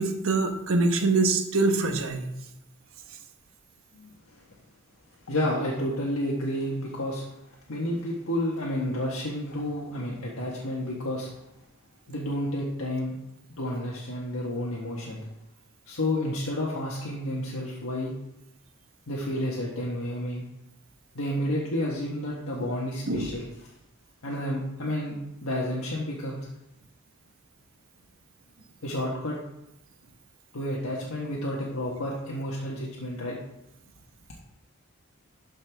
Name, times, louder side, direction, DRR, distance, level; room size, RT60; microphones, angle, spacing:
voice 1, 0.0-2.3 23.1-23.3, right 3 dB, 75° right, 5 dB, 1.2 m, -24 dB
voice 2, 5.3-7.3 7.7-11.3 12.1-13.2 13.6-15.2 15.9-18.1 19.1-20.4 21.1-23.5 24.2-26.5 28.8-29.4 30.5-33.4, left 1 dB, 85° left, -4 dB, 1.4 m, -30 dB
12.0 x 5.4 x 3.4 m, 0.85 s
head